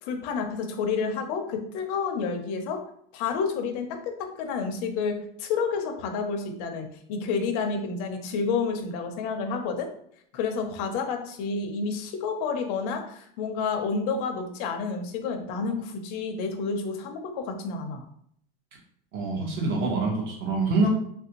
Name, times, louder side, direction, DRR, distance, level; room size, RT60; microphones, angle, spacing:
voice 1, 0.0-2.8 3.1-9.9 10.3-18.0, left 5 dB, 40° left, 4 dB, 0.5 m, -30 dB
voice 2, 19.1-20.9, right 3 dB, 35° right, -1 dB, 0.8 m, -25 dB
3.3 x 2.5 x 2.8 m, 0.67 s
supercardioid pair, 170°, 30 cm